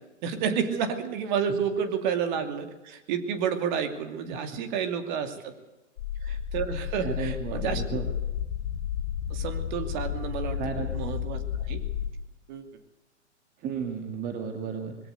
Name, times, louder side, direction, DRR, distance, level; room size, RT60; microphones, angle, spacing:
voice 1, 0.2-5.5 6.2-8.0 9.3-10.6 10.9-11.4 11.7-11.8 12.5-12.6, right 7 dB, 40° right, 8 dB, 2.6 m, -30 dB
sound 1, 6.0-12.1, left 9 dB, 40° left, 3.1 m, -32 dB
voice 2, 7.0-8.1 10.6-10.9 13.6-15.1, right 5 dB, 25° right, 6 dB, 2.0 m, -34 dB
21.0 x 16.5 x 8.0 m, 1.0 s
figure-of-eight pair, 120°, 36 cm